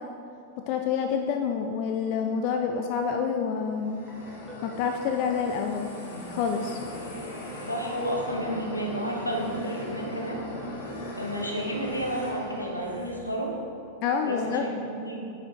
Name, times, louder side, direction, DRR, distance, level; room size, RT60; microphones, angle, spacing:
voice 1, 0.7-4.0 4.6-5.9 6.3-6.8 14.0-14.6, left 6 dB, 45° left, 5 dB, 0.4 m, -27 dB
sound 1, 3.6-13.4, left 1 dB, 65° left, 1.6 m, -39 dB
Guitar, 4.1-6.9, right 3 dB, 5° right, 2.1 m, -44 dB
voice 2, 7.7-10.4 11.2-13.5 14.2-15.3, right 1 dB, 85° left, -1 dB, 1.2 m, -31 dB
9.1 x 5.6 x 4.6 m, 2.5 s
figure-of-eight pair, 90°, 0 cm